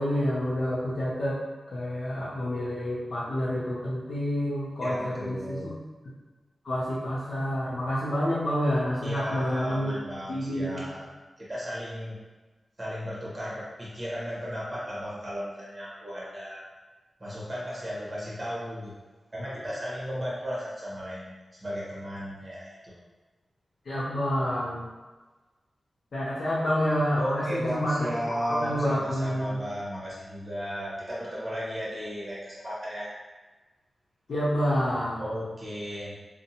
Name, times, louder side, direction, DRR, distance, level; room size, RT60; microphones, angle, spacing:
voice 1, 0.0-1.4 1.7-5.7 6.6-9.9 10.3-10.8 23.9-24.8 26.1-28.0 28.4-29.6 34.3-35.3, equal, 75° left, -7 dB, 0.5 m, -28 dB
voice 2, 4.8-5.7 9.0-11.0 11.4-12.1 12.8-16.6 17.2-18.9 19.3-21.3 21.6-22.9 27.1-33.1 35.2-36.1, equal, 25° right, -8 dB, 0.9 m, -35 dB
2.6 x 2.1 x 2.8 m, 1.3 s
wide cardioid pair, 125°, 0 cm